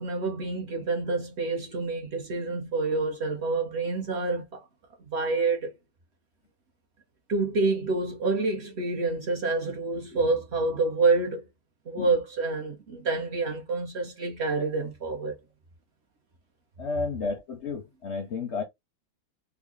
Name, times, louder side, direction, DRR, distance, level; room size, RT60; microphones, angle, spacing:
voice 1, 0.0-4.7 5.0-5.7 7.3-11.4 11.9-15.3, right 3 dB, 50° right, 0.9 m, -28 dB
voice 2, 16.8-18.6, left 4 dB, 55° left, 0.8 m, -31 dB
3.6 x 2.1 x 3.5 m
omnidirectional pair, 1.8 m